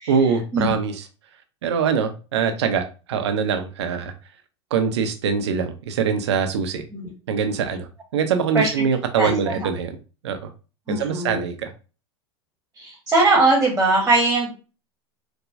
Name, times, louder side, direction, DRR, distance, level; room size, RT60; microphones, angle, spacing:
voice 1, 0.1-1.0 1.6-4.1 4.7-6.8 7.3-10.0 10.2-10.5 10.9-11.7, right 6 dB, 70° right, 0.7 m, -23 dB
voice 2, 9.2-9.7 10.9-11.4 12.8-14.5, right 2 dB, 10° right, 1.2 m, -20 dB
4.6 x 2.2 x 2.5 m
hypercardioid pair, 90°, 15 cm